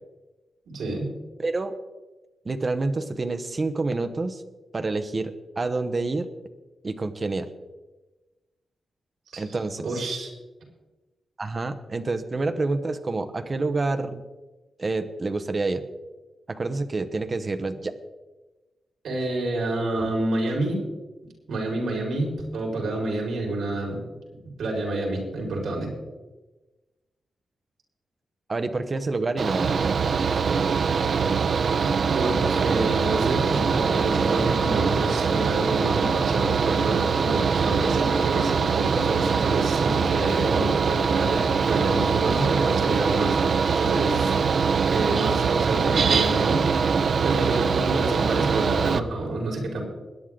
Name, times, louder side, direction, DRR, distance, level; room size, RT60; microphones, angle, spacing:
voice 1, 0.7-1.1 9.3-9.4 9.8-10.3 19.0-20.8 21.5-24.0 24.6-25.9 32.1-43.4 43.8-44.3 44.9-47.0 47.2-49.8, right 2 dB, 80° right, 0 dB, 4.7 m, -28 dB
voice 2, 1.4-1.7 2.4-4.4 4.7-6.3 6.8-7.5 9.4-10.0 11.4-14.2 14.8-15.8 16.5-17.9 28.5-29.8, right 3 dB, 30° right, 9 dB, 0.9 m, -28 dB
Mechanical fan, 29.4-49.0, right 5 dB, 50° right, 0.6 m, -23 dB
21.5 x 10.0 x 3.8 m, 1.2 s
wide cardioid pair, 165°, 0 cm